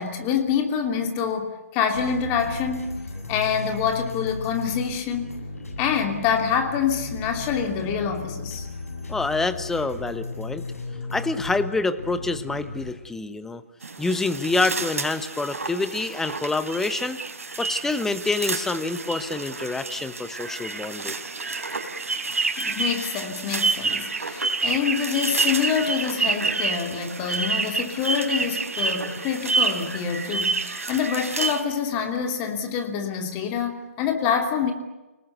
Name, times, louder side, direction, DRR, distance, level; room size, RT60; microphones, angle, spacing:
voice 1, 0.0-3.0 3.3-5.4 5.8-8.7 22.6-34.7, left 7 dB, 25° left, 5 dB, 2.9 m, -26 dB
sound 1, 1.9-12.9, left 3 dB, 75° left, 7.6 m, -35 dB
voice 2, 9.1-10.7 11.1-13.6 14.0-17.2 17.6-21.1, left 3 dB, 5° left, 12 dB, 1.0 m, -27 dB
sound 2, 13.8-31.6, right 4 dB, 75° right, 3.8 m, -28 dB
29.0 x 19.5 x 8.2 m, 1.1 s
figure-of-eight pair, 140°, 8 cm